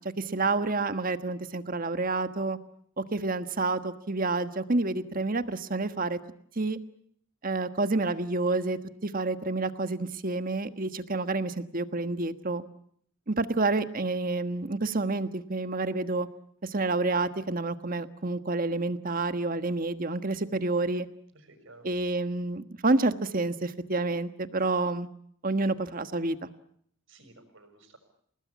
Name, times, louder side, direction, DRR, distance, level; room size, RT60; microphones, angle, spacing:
voice 1, 0.2-2.6 3.0-6.2 6.5-6.8 7.4-12.6 13.3-16.3 16.6-21.1 21.8-25.1 25.4-26.4, right 3 dB, 40° right, 10 dB, 1.4 m, -29 dB
voice 2, 21.3-21.9 27.1-28.0, right 2 dB, 65° right, 8 dB, 6.5 m, -54 dB
29.0 x 19.5 x 8.5 m, 0.67 s
head